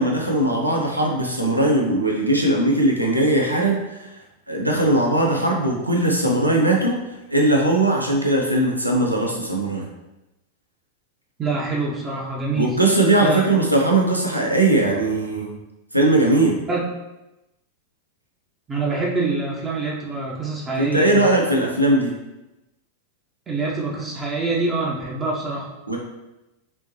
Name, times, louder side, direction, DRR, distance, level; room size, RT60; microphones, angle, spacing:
voice 1, 0.0-4.1 4.5-9.9 12.5-15.5 15.9-16.6 20.8-22.1 25.9-26.0, right 1 dB, 85° right, 0 dB, 0.7 m, -19 dB
voice 2, 11.4-12.7 13.2-13.4 16.7-16.8 18.7-21.3 23.5-25.7, right 3 dB, 20° right, -4 dB, 0.9 m, -25 dB
5.3 x 2.9 x 3.0 m, 0.97 s
figure-of-eight pair, 90°, 0 cm